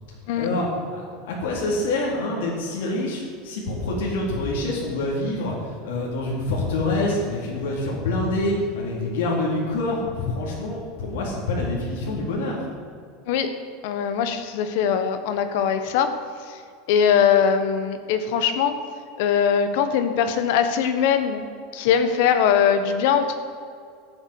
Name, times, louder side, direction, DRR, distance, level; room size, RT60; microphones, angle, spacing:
voice 1, 0.4-12.6, left 2 dB, 85° left, -3 dB, 3.7 m, -26 dB
voice 2, 13.8-16.1 16.5-16.6 16.9-18.7 19.2-21.4 21.7-23.4, left 7 dB, 55° left, 9 dB, 1.4 m, -21 dB
13.5 x 7.9 x 9.6 m, 2.3 s
supercardioid pair, 175°, 0 cm